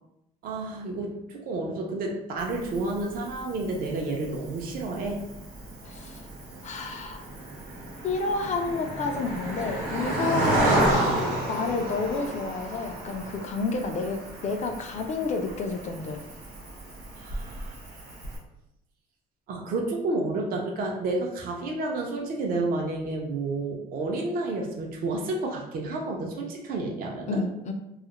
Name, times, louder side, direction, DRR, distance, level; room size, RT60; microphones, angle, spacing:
voice 1, 0.4-5.2 17.2-17.8 19.5-27.4, right 2 dB, 60° right, 0 dB, 0.5 m, -30 dB
Cricket, 2.4-18.4, right 1 dB, 85° right, 0.9 m, -32 dB
voice 2, 5.8-6.3 6.6-7.2 8.0-10.8 11.5-16.2 27.3-27.7, left 3 dB, 45° left, 5 dB, 0.4 m, -30 dB
2.3 x 2.0 x 2.9 m, 0.84 s
cardioid pair, 110°, 17 cm